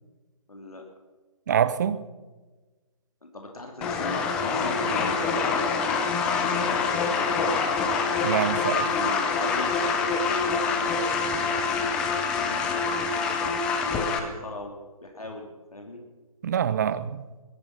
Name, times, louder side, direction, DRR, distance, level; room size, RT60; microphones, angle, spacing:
voice 1, 0.5-0.8 3.3-7.3 8.5-12.0 12.4-13.5 14.0-16.0, left 1 dB, 80° left, 2 dB, 2.9 m, -38 dB
voice 2, 1.5-2.0 8.2-8.8 16.4-17.2, right 9 dB, 30° right, 15 dB, 0.7 m, -25 dB
sound 1, 3.8-14.2, left 5 dB, 5° left, 0.4 m, -26 dB
22.5 x 8.9 x 6.0 m, 1.3 s
figure-of-eight pair, 150°, 19 cm